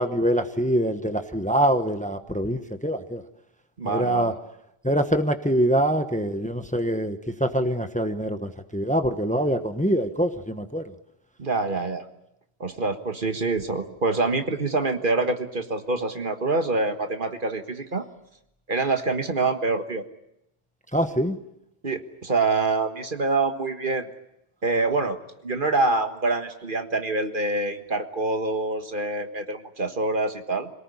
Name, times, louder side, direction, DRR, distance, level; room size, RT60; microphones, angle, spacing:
voice 1, 0.0-3.2 3.8-4.3 4.8-10.9 20.9-21.4, right 1 dB, 5° left, 8 dB, 1.2 m, -24 dB
voice 2, 3.8-4.3 11.4-12.1 12.6-18.1 18.7-20.0 21.8-24.1 24.6-25.2 25.4-30.7, right 3 dB, 55° right, 7 dB, 1.8 m, -26 dB
26.0 x 19.0 x 9.8 m, 0.82 s
omnidirectional pair, 1.1 m